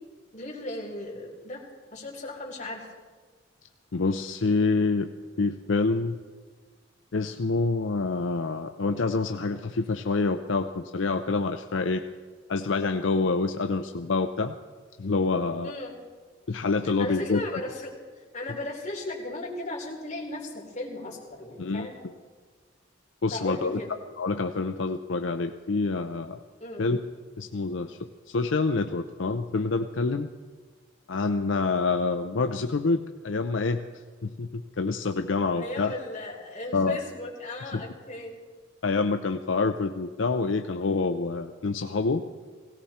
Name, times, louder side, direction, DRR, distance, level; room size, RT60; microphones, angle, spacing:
voice 1, 0.3-1.6 1.9-2.9 15.6-16.0 17.0-22.0 23.3-23.9 26.6-26.9 35.5-38.4, left 2 dB, 35° left, -3 dB, 3.6 m, -36 dB
voice 2, 3.9-5.1 5.4-6.2 7.1-12.0 12.5-14.5 15.0-15.7 16.5-17.6 21.6-21.9 23.2-23.8 24.2-26.4 26.8-27.0 27.4-30.3 31.1-33.8 34.2-35.9 36.7-37.0 37.7-37.8 38.8-42.2, left 3 dB, 70° left, 7 dB, 0.6 m, -27 dB
17.5 x 17.5 x 4.3 m, 1.5 s
head